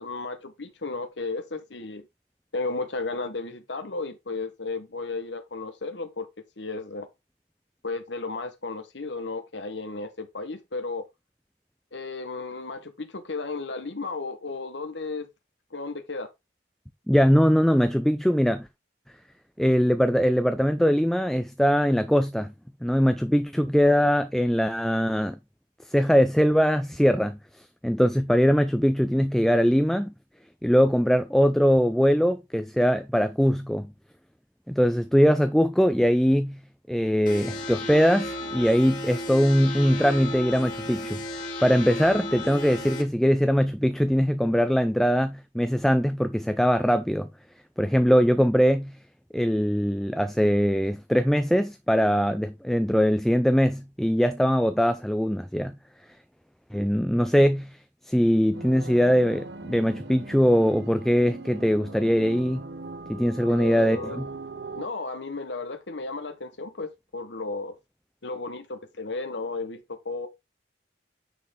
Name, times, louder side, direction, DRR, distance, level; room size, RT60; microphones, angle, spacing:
voice 1, 0.0-2.0 2.5-6.3 6.6-7.1 7.8-11.1 11.9-15.3 15.7-16.3 63.5-64.2 64.7-67.8 68.2-70.3, left 3 dB, 80° left, 1.2 m, -34 dB
voice 2, 17.1-18.7 19.6-22.5 22.8-25.4 25.9-30.1 30.6-33.9 34.7-36.6 36.9-41.2 41.6-47.3 47.8-49.0 49.3-55.8 56.7-57.8 58.1-62.7 63.1-64.3, equal, ahead, 0.4 m, -22 dB
sound 1, 37.3-43.0, left 1 dB, 45° left, 2.3 m, -34 dB
sound 2, 58.5-64.9, right 3 dB, 70° right, 0.9 m, -40 dB
9.6 x 4.5 x 3.6 m
head